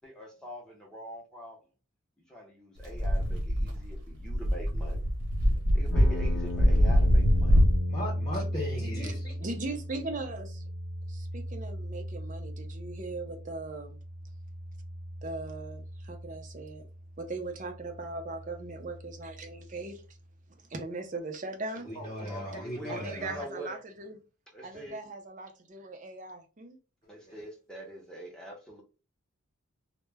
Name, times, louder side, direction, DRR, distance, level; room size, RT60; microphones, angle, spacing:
voice 1, 0.0-1.6 2.3-5.1 5.7-7.6 22.2-23.8 24.5-25.0 27.1-28.8, equal, 5° left, 0.6 m, -44 dB
sound 1, 2.8-7.8, equal, 65° right, 1.1 m, -24 dB
sound 2, 5.9-19.9, left 1 dB, 65° left, 0.5 m, -37 dB
voice 2, 7.9-9.3 21.7-23.4 27.3-27.4, equal, 30° left, 0.9 m, -37 dB
voice 3, 9.4-10.6 11.1-14.0 15.2-16.9 17.2-20.0 20.7-21.9 22.9-24.2 24.6-26.8, right 3 dB, 35° right, 0.5 m, -39 dB
2.1 x 2.1 x 3.3 m
head